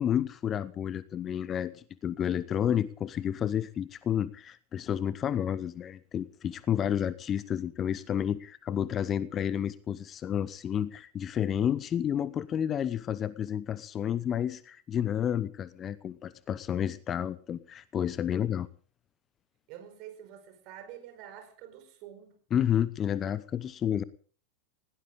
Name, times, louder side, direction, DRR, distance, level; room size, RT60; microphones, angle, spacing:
voice 1, 0.0-18.7 22.5-24.0, left 9 dB, 25° left, 18 dB, 0.9 m, -30 dB
voice 2, 19.7-22.3, right 10 dB, 40° right, 8 dB, 4.7 m, -47 dB
20.0 x 17.5 x 3.8 m, 0.41 s
figure-of-eight pair, 90°, 0 cm